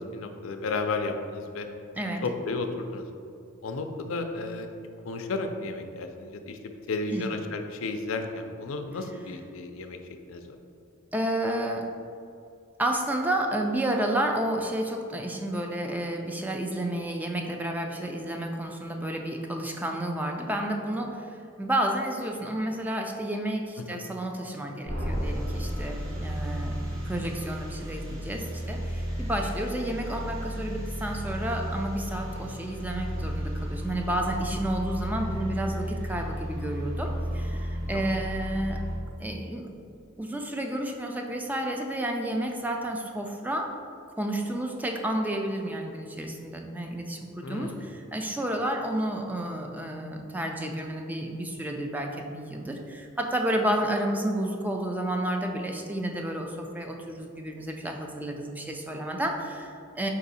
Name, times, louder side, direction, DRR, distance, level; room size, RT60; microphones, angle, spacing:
voice 1, 0.0-1.7 2.2-3.0 3.6-4.7 5.1-10.0 10.3-10.6 23.9-24.0 37.9-38.2 47.4-47.9, left 3 dB, 70° left, 5 dB, 0.4 m, -33 dB
voice 2, 11.1-11.8 12.8-38.8 39.2-39.7 40.2-43.7 44.2-60.1, right 1 dB, 10° right, 2 dB, 0.3 m, -31 dB
sound 1, 24.8-39.0, equal, 70° right, 1.1 m, -33 dB
4.8 x 2.6 x 4.0 m, 2.5 s
head